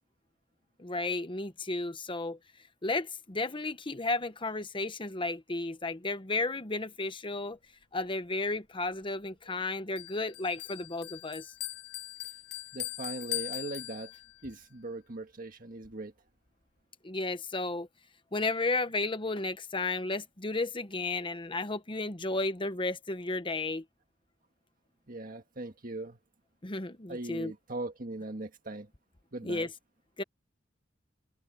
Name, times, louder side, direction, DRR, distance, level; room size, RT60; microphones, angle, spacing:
voice 1, 0.8-2.4 2.8-7.6 7.9-11.4 17.0-17.9 18.3-23.8 26.6-27.5 29.4-29.7 30.2-30.3, left 3 dB, 25° left, 1.1 m, -33 dB
Bell, 10.0-14.5, left 17 dB, 60° left, 3.2 m, -40 dB
voice 2, 12.7-14.1 14.4-16.1 25.1-26.2 27.1-28.9 29.3-29.7, right 2 dB, 45° right, 1.7 m, -40 dB
head